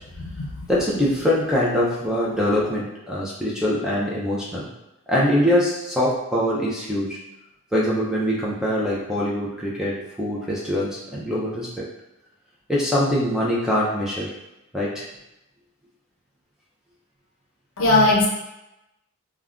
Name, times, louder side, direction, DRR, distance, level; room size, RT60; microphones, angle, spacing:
voice 1, 0.7-4.7 5.1-7.2 7.7-11.8 12.7-14.3 14.7-15.0, left 1 dB, ahead, -6 dB, 0.4 m, -23 dB
voice 2, 17.8-18.3, left 2 dB, 65° left, -1 dB, 0.6 m, -18 dB
2.4 x 2.2 x 3.5 m, 0.93 s
head